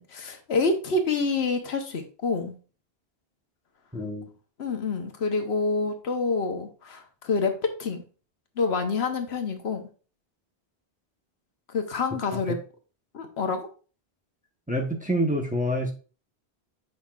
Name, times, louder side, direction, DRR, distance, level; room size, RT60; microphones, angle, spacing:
voice 1, 0.0-2.6 4.6-8.0 8.6-9.9 11.7-12.6 13.1-13.7, left 4 dB, 80° left, 5 dB, 1.2 m, -27 dB
voice 2, 3.9-4.3 14.7-15.9, equal, 10° right, 1 dB, 0.9 m, -26 dB
8.0 x 5.3 x 2.4 m, 0.36 s
omnidirectional pair, 1.1 m